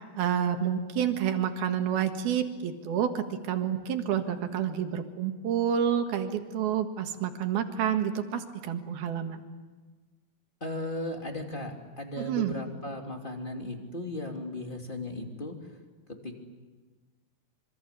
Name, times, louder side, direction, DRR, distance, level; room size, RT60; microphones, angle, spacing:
voice 1, 0.2-9.4 12.2-12.6, right 9 dB, 75° right, 6 dB, 3.5 m, -29 dB
voice 2, 10.6-15.5 16.2-16.5, left 1 dB, 15° left, 2 dB, 2.4 m, -36 dB
26.5 x 25.5 x 8.3 m, 1.3 s
omnidirectional pair, 4.6 m